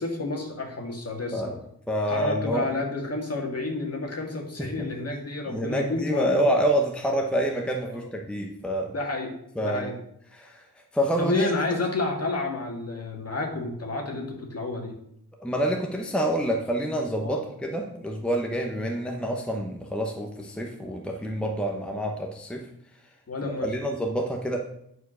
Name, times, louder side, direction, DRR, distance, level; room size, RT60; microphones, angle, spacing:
voice 1, 0.0-1.5 2.1-6.5 8.0-8.1 8.9-9.3 9.6-9.9 11.2-15.0 17.2-17.4 23.3-23.7, left 2 dB, 40° left, 1 dB, 1.9 m, -30 dB
voice 2, 1.9-2.7 4.6-4.9 5.5-8.9 9.6-9.9 10.3-10.6 10.9-11.5 15.4-22.7 23.6-24.6, right 1 dB, 5° left, 1 dB, 0.9 m, -27 dB
9.1 x 4.8 x 6.2 m, 0.73 s
wide cardioid pair, 145°, 38 cm